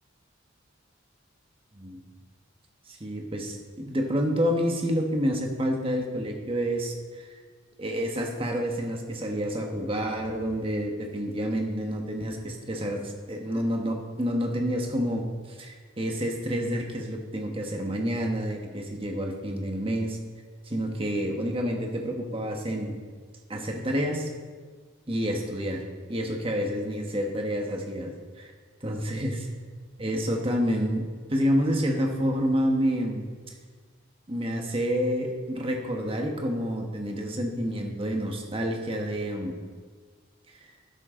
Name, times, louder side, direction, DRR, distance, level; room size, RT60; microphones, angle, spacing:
voice 1, 2.9-7.3 7.8-13.0 13.3-20.2 20.7-23.0 23.5-24.3 25.1-25.8 26.1-28.5 28.8-29.4 30.0-31.0 31.3-33.2 34.3-39.6, equal, 30° right, 2 dB, 1.4 m, -28 dB
12.5 x 10.5 x 3.8 m, 1.6 s
head